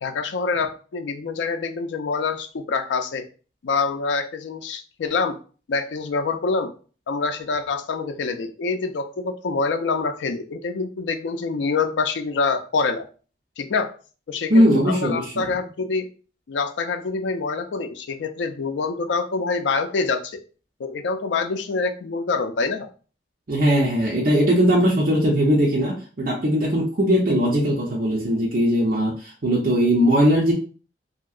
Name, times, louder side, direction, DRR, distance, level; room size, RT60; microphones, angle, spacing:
voice 1, 0.0-3.3 3.6-5.4 5.7-6.7 7.1-13.1 13.6-13.9 14.3-16.1 16.5-20.4 20.8-22.9, left 4 dB, 85° left, 8 dB, 0.4 m, -26 dB
voice 2, 14.5-15.3 23.5-30.5, equal, 50° right, -4 dB, 0.6 m, -19 dB
2.9 x 2.7 x 2.4 m, 0.38 s
head